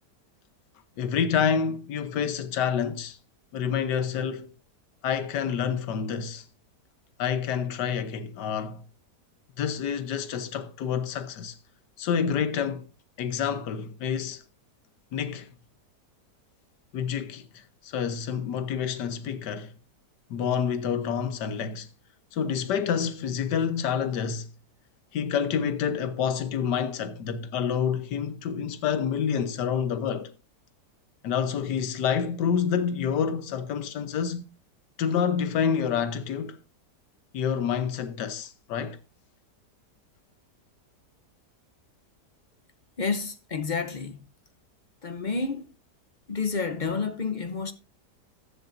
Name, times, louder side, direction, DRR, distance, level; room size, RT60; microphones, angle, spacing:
voice 1, 1.0-3.2 3.5-4.5 5.0-6.4 7.2-8.8 9.6-11.6 12.0-12.9 13.2-14.4 15.1-15.5 16.9-19.7 20.3-21.9 22.3-24.5 25.1-30.3 31.2-34.4 35.0-36.6 37.3-39.0, left 7 dB, 85° left, 1.5 m, -28 dB
voice 2, 43.0-44.2 45.0-45.7 46.3-47.7, left 4 dB, 45° left, 0.6 m, -29 dB
14.5 x 10.5 x 2.6 m
omnidirectional pair, 1.8 m